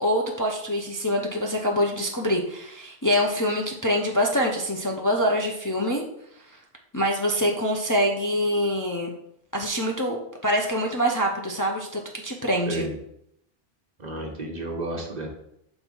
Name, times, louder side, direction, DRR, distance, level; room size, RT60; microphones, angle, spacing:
voice 1, 0.0-6.0 6.9-9.1 9.5-12.9, equal, 20° left, -1 dB, 0.6 m, -25 dB
voice 2, 14.0-15.3, right 2 dB, 45° right, 1 dB, 1.0 m, -32 dB
6.0 x 3.5 x 5.4 m, 0.75 s
omnidirectional pair, 1.1 m